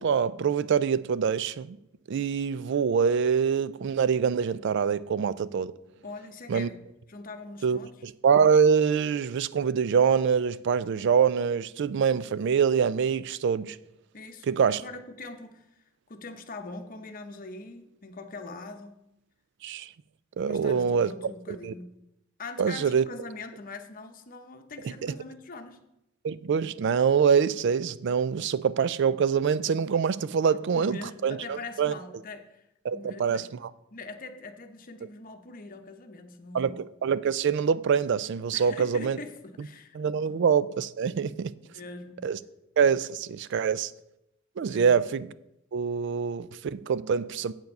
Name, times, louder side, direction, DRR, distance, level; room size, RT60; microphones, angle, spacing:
voice 1, 0.0-1.8 2.1-5.7 6.5-6.7 7.6-13.8 14.5-14.8 19.6-19.9 20.4-21.3 21.6-21.7 22.6-23.0 25.0-25.1 26.2-31.9 32.8-33.5 36.5-39.2 39.9-41.5 42.2-42.4 42.8-43.9 44.6-45.3 45.7-47.5, right 6 dB, 60° right, 0.3 m, -25 dB
voice 2, 6.0-6.8 7.1-7.9 14.1-15.7 16.1-19.0 20.5-21.9 22.4-25.8 30.7-32.6 32.9-33.5 33.9-36.8 38.5-40.4 41.7-42.2 44.7-45.1, left 3 dB, 45° left, 0.8 m, -42 dB
7.8 x 7.1 x 5.3 m
head